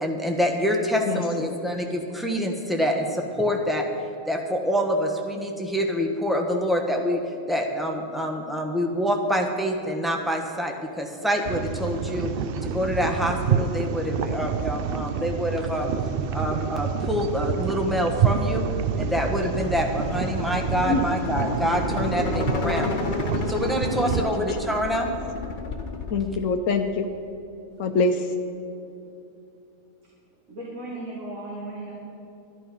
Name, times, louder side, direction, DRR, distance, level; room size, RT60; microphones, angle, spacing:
voice 1, 0.0-3.9 4.3-7.2 7.5-12.3 12.6-15.9 16.3-18.7 19.0-22.9 23.5-25.1, equal, ahead, 1 dB, 1.1 m, -26 dB
voice 2, 1.1-1.5 20.8-21.0 26.1-27.1 27.8-28.3, left 3 dB, 75° left, 4 dB, 1.1 m, -24 dB
sound 1, 11.4-24.2, right 7 dB, 60° right, 0.6 m, -28 dB
sound 2, 18.1-26.2, left 4 dB, 45° left, 0.9 m, -32 dB
voice 3, 30.5-31.9, right 2 dB, 80° right, -6 dB, 2.7 m, -36 dB
12.0 x 11.0 x 5.5 m, 2.7 s
omnidirectional pair, 1.4 m